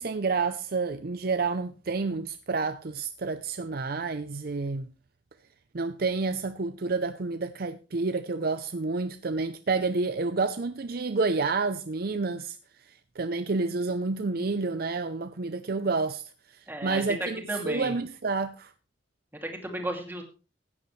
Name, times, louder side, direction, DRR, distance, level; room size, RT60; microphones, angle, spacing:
voice 1, 0.0-4.9 5.7-12.6 13.2-18.7, right 4 dB, 50° right, 0.6 m, -29 dB
voice 2, 16.7-17.9 19.4-20.2, right 1 dB, 10° right, 2.6 m, -33 dB
16.0 x 9.8 x 3.2 m
head